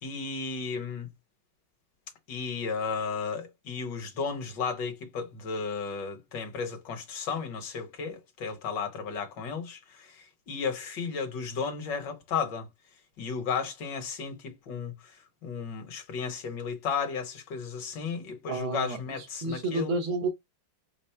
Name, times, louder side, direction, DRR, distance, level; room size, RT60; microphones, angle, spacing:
voice 1, 0.0-1.1 2.3-12.7 13.2-14.9 15.4-19.9, left 5 dB, 65° left, 1.7 m, -34 dB
voice 2, 18.5-20.3, right 2 dB, 85° right, 2.1 m, -31 dB
5.1 x 2.0 x 4.4 m
omnidirectional pair, 2.2 m